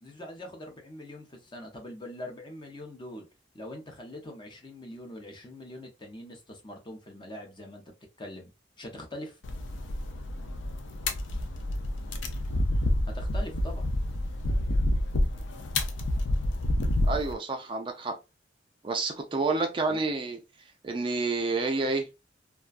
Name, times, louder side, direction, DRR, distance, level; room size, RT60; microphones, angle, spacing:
voice 1, 0.0-3.3 3.5-7.8 8.2-8.5 8.8-9.4 13.1-13.9 19.7-20.0, left 1 dB, 25° left, 0.6 m, -43 dB
sound 1, 9.4-17.3, left 1 dB, 70° left, 0.4 m, -28 dB
voice 2, 17.1-18.2 18.8-20.4 20.8-22.1, right 3 dB, 25° right, 0.3 m, -29 dB
2.3 x 2.2 x 2.4 m
head